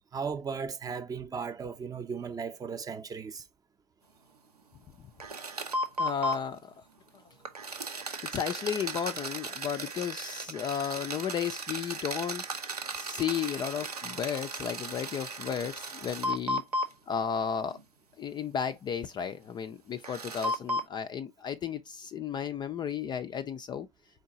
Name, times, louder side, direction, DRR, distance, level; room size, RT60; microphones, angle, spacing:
voice 1, 0.1-3.4, right 5 dB, 20° right, 0.6 m, -36 dB
sound 1, 5.2-6.4 7.4-16.9 17.7-17.8 20.0-20.9, right 1 dB, 85° right, 0.7 m, -35 dB
voice 2, 6.0-6.7 8.3-12.4 13.0-16.6 17.1-17.8 18.2-23.9, left 8 dB, 25° left, 0.4 m, -33 dB
4.5 x 3.8 x 2.5 m
figure-of-eight pair, 75°, 19 cm